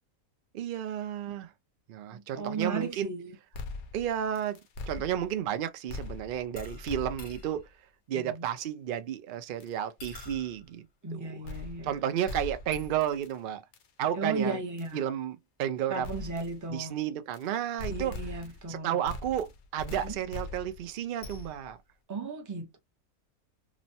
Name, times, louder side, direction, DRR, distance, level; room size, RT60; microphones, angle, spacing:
voice 1, 0.5-1.5 1.9-3.1 3.9-4.6 4.9-7.6 8.1-10.9 11.1-11.4 11.8-13.6 14.0-14.6 14.9-16.1 16.7-18.1 18.7-21.8, right 10 dB, 85° right, 0.4 m, -32 dB
voice 2, 2.1-3.4 8.1-8.4 11.0-12.0 14.2-15.1 15.9-17.0 17.9-19.0 20.0-20.2 22.1-22.8, right 3 dB, 25° right, 0.4 m, -35 dB
sound 1, 3.5-5.5 5.9-7.6 9.6-9.7 10.0-10.6 11.5-12.0 12.3-13.3 13.7-13.9 14.8-14.9 16.0-16.6 17.3-17.5 17.8-18.7 19.0-21.7, left 3 dB, 65° left, 0.8 m, -41 dB
3.0 x 2.1 x 2.6 m
omnidirectional pair, 1.5 m